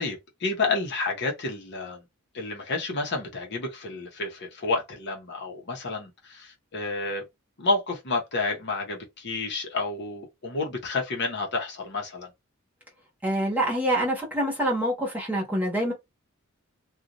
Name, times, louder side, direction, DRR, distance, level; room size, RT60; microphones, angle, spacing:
voice 1, 0.0-2.0 2.3-7.2 7.6-12.3, left 3 dB, 55° left, 0.9 m, -30 dB
voice 2, 13.2-15.9, right 1 dB, 10° right, 1.1 m, -26 dB
2.5 x 2.4 x 2.9 m
head